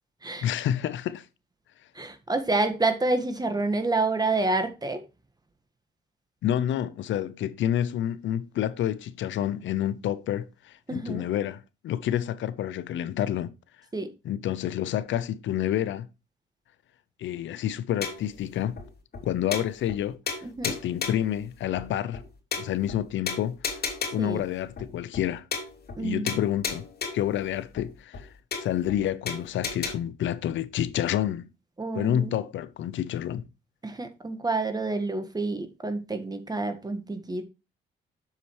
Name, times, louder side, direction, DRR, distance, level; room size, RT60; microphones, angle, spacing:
voice 1, 0.4-1.3 6.4-13.5 14.2-16.1 17.2-18.8 19.2-20.2 20.6-22.2 22.6-23.6 24.1-25.5 26.0-26.9 27.1-28.3 28.6-31.5 31.9-33.5, left 11 dB, 70° left, 0.7 m, -28 dB
voice 2, 1.9-5.0 10.9-11.3 13.9-14.1 20.4-20.8 24.2-24.4 26.0-26.2 31.8-32.3 33.8-37.4, right 3 dB, 20° right, 1.6 m, -28 dB
sound 1, 18.0-18.4 18.8-18.9 19.1-19.2 19.5-20.0 20.3-21.3 21.8-21.9 22.1-22.2 22.5-23.0 23.3-24.3 24.8-24.9 25.1-25.3 25.5-26.0 26.3-27.3 27.8-27.9 28.1-28.2 28.5-29.0 29.3-29.9, left 5 dB, 50° left, 2.9 m, -33 dB
7.4 x 6.9 x 3.1 m
cardioid pair, 90°, 20 cm